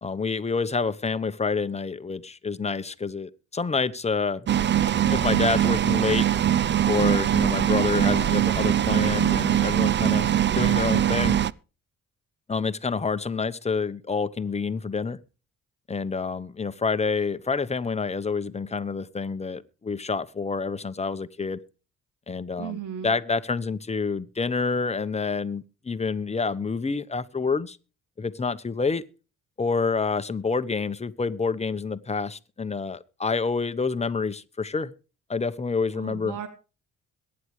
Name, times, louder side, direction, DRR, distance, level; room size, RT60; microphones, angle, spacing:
voice 1, 0.0-4.5 4.9-6.3 6.9-11.4 12.5-15.2 15.9-21.6 22.3-27.8 28.2-29.0 29.6-34.9 35.3-36.4, left 4 dB, 20° left, 1.0 m, -28 dB
sound 1, 4.5-11.5, right 10 dB, 40° right, 0.6 m, -22 dB
voice 2, 22.6-23.1 35.9-36.5, right 9 dB, 85° right, 1.9 m, -35 dB
22.0 x 9.8 x 3.2 m
cardioid pair, 90°, 30 cm